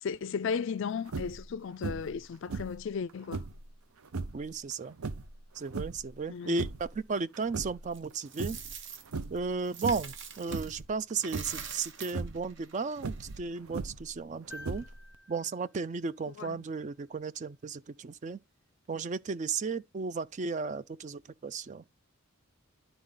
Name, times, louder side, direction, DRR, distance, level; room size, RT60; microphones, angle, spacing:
voice 1, 0.0-3.4 6.3-6.7 16.4-16.6, left 6 dB, 55° left, 0.4 m, -35 dB
sound 1, 1.1-1.5 1.8-2.2 2.5-3.6 4.1-4.4 5.0-6.1 6.4-7.0 7.3-8.1 8.4-8.8 9.1-9.5 9.8-10.2 10.5-10.9 11.3-11.7 12.1-12.4 13.0-14.1 14.6-15.2, right 3 dB, 75° right, 0.7 m, -38 dB
voice 2, 4.3-5.0 5.6-8.6 9.3-14.9 15.3-18.4 18.9-21.8, right 4 dB, 35° right, 0.3 m, -34 dB
Coin (dropping), 7.9-10.8 11.1-13.4, right 7 dB, 55° right, 1.1 m, -45 dB
sound 2, 14.5-16.8 18.8-18.9, left 1 dB, 15° right, 1.7 m, -52 dB
11.0 x 4.0 x 3.8 m
head